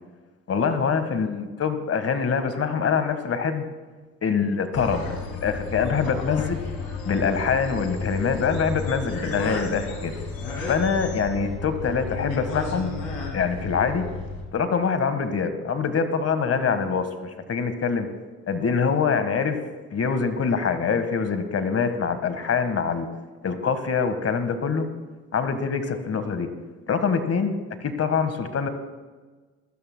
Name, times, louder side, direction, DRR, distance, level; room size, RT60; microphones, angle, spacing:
voice 1, 0.5-3.6 4.2-6.6 7.0-10.1 10.7-12.9 13.3-14.1 14.5-18.1 18.5-19.6 19.9-23.1 23.4-24.9 25.3-26.5 26.9-28.7, left 5 dB, 40° left, 9 dB, 1.6 m, -24 dB
sound 1, 4.7-14.4, left 4 dB, 70° left, 2.3 m, -32 dB
23.0 x 12.5 x 2.2 m, 1.3 s
hypercardioid pair, 55°, 36 cm